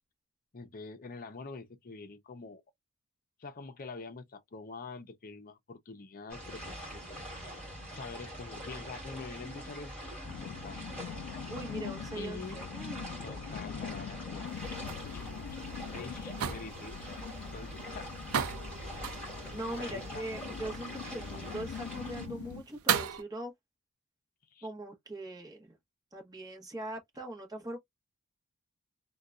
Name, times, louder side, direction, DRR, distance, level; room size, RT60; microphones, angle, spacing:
voice 1, 0.5-2.6 3.4-7.0 7.9-11.2 12.1-12.6 13.2-14.4 15.1-15.3 15.9-18.1 19.7-20.2 21.1-21.4 24.5-24.7, left 4 dB, 40° left, 0.6 m, -46 dB
sound 1, 6.3-22.3, equal, 5° left, 2.4 m, -44 dB
sound 2, 10.2-22.6, left 7 dB, 90° left, 0.3 m, -43 dB
voice 2, 11.5-13.0 19.5-23.5 24.6-25.8 26.1-27.8, right 1 dB, 20° right, 1.2 m, -41 dB
sound 3, 14.5-23.2, right 8 dB, 80° right, 0.5 m, -38 dB
3.8 x 2.3 x 2.4 m
head